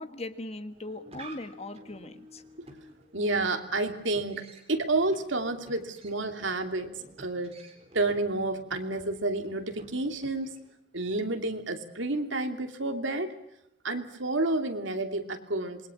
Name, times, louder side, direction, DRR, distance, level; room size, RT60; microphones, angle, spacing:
voice 1, 0.0-2.4, left 2 dB, 30° left, 10 dB, 1.4 m, -39 dB
sound 1, 0.7-10.7, right 2 dB, 30° right, 4.4 m, -52 dB
voice 2, 3.1-6.9 7.2-7.6 7.9-10.6 10.9-13.3 13.8-15.9, right 2 dB, 75° right, 6 dB, 2.8 m, -30 dB
27.5 x 22.0 x 7.2 m, 0.81 s
head